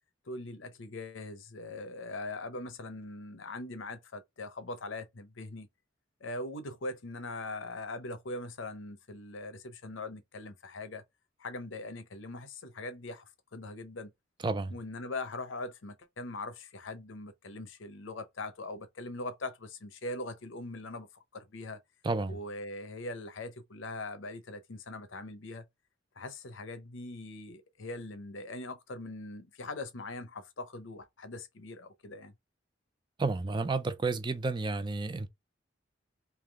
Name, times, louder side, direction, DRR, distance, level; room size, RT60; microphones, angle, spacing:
voice 1, 0.2-5.7 6.2-11.0 11.4-13.2 13.5-14.1 14.7-21.8 22.3-25.7 26.1-32.3, left 2 dB, 80° left, 0.8 m, -41 dB
voice 2, 22.0-22.4 33.2-35.3, right 3 dB, 25° right, 0.4 m, -31 dB
3.5 x 2.9 x 3.4 m
head